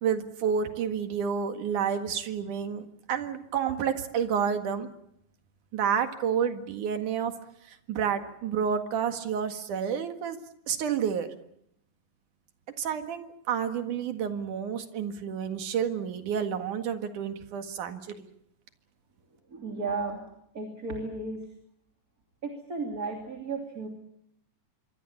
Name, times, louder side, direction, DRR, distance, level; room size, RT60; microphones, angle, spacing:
voice 1, 0.0-4.9 5.7-7.3 7.7-10.4 10.7-11.3 12.8-18.3, right 7 dB, 70° right, 7 dB, 3.3 m, -30 dB
voice 2, 19.5-20.2 20.5-21.4 22.4-23.9, right 3 dB, 30° right, 2 dB, 3.1 m, -34 dB
26.0 x 23.5 x 7.3 m, 0.75 s
omnidirectional pair, 3.7 m